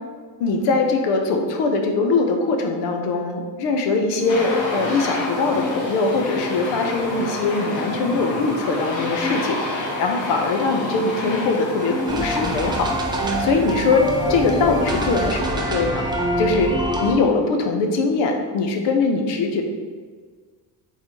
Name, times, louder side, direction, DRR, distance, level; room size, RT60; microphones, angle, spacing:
voice 1, 0.4-12.9 13.2-14.0 14.3-16.1 16.4-19.6, left 3 dB, 90° left, 4 dB, 0.8 m, -22 dB
sound 1, 4.2-16.0, left 1 dB, 30° left, 1.2 m, -34 dB
Aircraft, 4.3-12.9, left 2 dB, 45° left, 0.9 m, -29 dB
sound 2, 12.1-17.1, equal, 10° right, 0.3 m, -25 dB
3.9 x 2.7 x 4.6 m, 1.5 s
cardioid pair, 135°, 41 cm